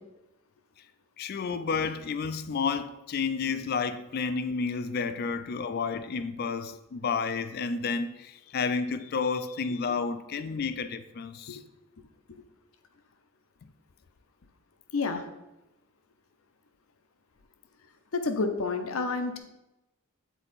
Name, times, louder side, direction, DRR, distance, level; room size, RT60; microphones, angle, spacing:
voice 1, 1.2-11.6, left 5 dB, 45° left, 0.3 m, -31 dB
voice 2, 18.1-19.4, left 3 dB, 75° left, 0.7 m, -29 dB
7.0 x 3.9 x 4.1 m
head